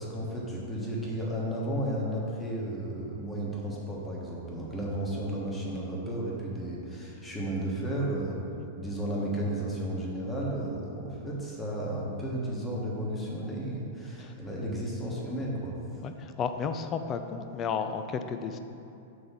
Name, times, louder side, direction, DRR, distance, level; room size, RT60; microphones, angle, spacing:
voice 1, 0.0-8.4 8.7-15.8, right 1 dB, 15° left, -4 dB, 1.4 m, -33 dB
voice 2, 16.0-18.6, left 6 dB, 30° left, 8 dB, 0.4 m, -33 dB
6.3 x 3.4 x 5.9 m, 2.7 s
figure-of-eight pair, 100°, 0 cm